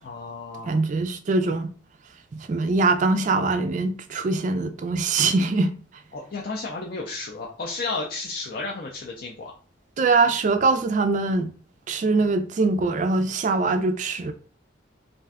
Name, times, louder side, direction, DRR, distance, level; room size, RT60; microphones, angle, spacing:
voice 1, 0.0-0.8 6.1-9.5, left 3 dB, 50° left, 0.4 m, -33 dB
voice 2, 0.7-1.7 2.3-5.7 10.0-11.5 11.9-14.3, right 3 dB, 40° right, 0.3 m, -22 dB
2.5 x 2.2 x 3.4 m
head